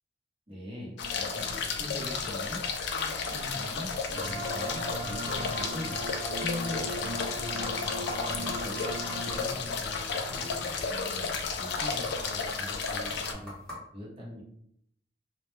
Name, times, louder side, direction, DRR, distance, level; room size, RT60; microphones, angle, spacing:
voice 1, 0.5-2.6 2.9-6.0 6.3-8.8 9.2-11.2 11.6-13.5 13.9-14.4, left 1 dB, 30° right, -5 dB, 0.7 m, -42 dB
sound 1, 1.0-13.3, left 5 dB, 65° left, 0.3 m, -33 dB
sound 2, 4.1-9.4, right 1 dB, 85° right, 0.8 m, -38 dB
sound 3, 4.7-13.7, left 1 dB, 5° left, 0.8 m, -46 dB
2.1 x 2.1 x 3.0 m, 0.71 s
head